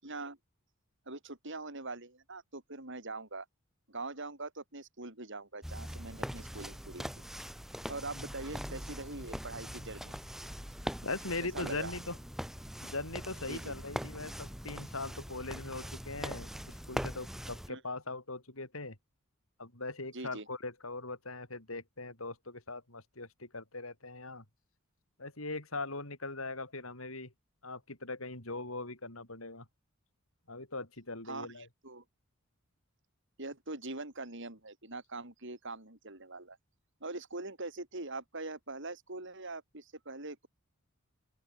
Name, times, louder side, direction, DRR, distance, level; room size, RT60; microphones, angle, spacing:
voice 1, 0.0-0.4 1.1-3.5 3.9-7.1 7.9-10.2 11.4-12.0 13.5-13.7 17.7-17.8 20.1-20.5 31.3-32.0 33.4-36.6 37.0-40.5, right 2 dB, 60° right, 7.0 m, -43 dB
sound 1, 5.6-17.7, equal, ahead, 1.7 m, -42 dB
voice 2, 11.0-12.2 12.8-16.5 16.9-19.0 19.6-24.4 25.2-27.3 27.6-29.7 30.5-31.7, left 3 dB, 75° left, 7.9 m, -40 dB
open air
head